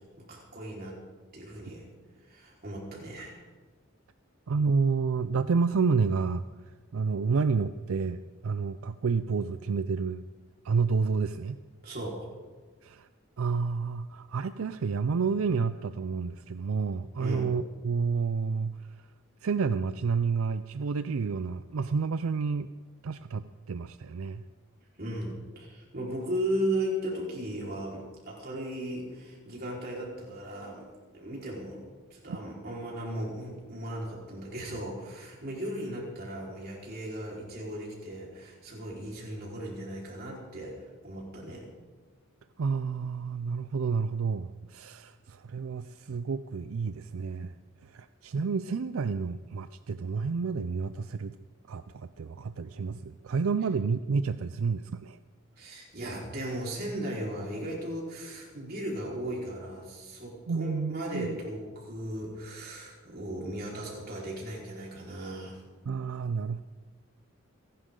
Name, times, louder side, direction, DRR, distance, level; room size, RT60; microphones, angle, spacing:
voice 1, 0.2-1.0 1.3-1.8 2.3-3.4 11.8-12.3 17.2-17.5 25.0-30.9 31.1-31.8 32.1-40.7 41.0-41.6 55.6-65.6, right 1 dB, 45° right, -4 dB, 4.4 m, -36 dB
voice 2, 4.5-6.4 6.9-10.2 10.6-11.6 12.8-13.1 13.4-18.7 19.4-22.7 23.0-24.4 32.3-32.4 42.6-47.5 47.8-51.4 51.7-55.2 60.5-61.4 65.9-66.6, right 5 dB, 80° right, 12 dB, 0.4 m, -30 dB
29.5 x 11.5 x 3.8 m, 1.4 s
head